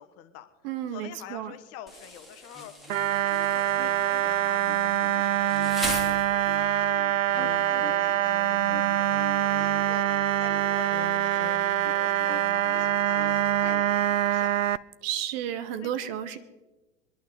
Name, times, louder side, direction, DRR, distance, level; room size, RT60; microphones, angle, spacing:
voice 1, 0.0-0.5 0.9-2.7 3.2-6.2 7.0-14.5 15.8-16.4, left 10 dB, 40° left, 9 dB, 1.3 m, -47 dB
voice 2, 0.6-1.5 15.0-16.4, right 10 dB, 45° right, 12 dB, 1.2 m, -32 dB
Insect, 1.9-6.8, left 1 dB, ahead, 3.1 m, -39 dB
sound 1, 2.5-13.8, left 4 dB, 20° left, 2.2 m, -43 dB
sound 2, 2.9-14.8, right 12 dB, 75° right, 0.5 m, -25 dB
24.0 x 11.5 x 3.9 m, 1.1 s
figure-of-eight pair, 85°, 40 cm